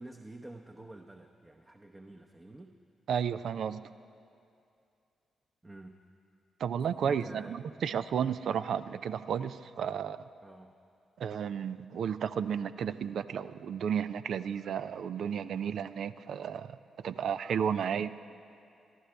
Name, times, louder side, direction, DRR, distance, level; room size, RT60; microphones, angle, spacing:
voice 1, 0.0-2.8 5.6-6.0 7.0-7.6 10.4-10.7 17.8-17.9, right 2 dB, 25° right, 3 dB, 0.9 m, -48 dB
voice 2, 3.1-3.8 6.6-10.2 11.2-16.8 17.0-18.1, right 8 dB, 65° right, 13 dB, 0.4 m, -33 dB
22.5 x 14.0 x 3.4 m, 2.5 s
hypercardioid pair, 40°, 0 cm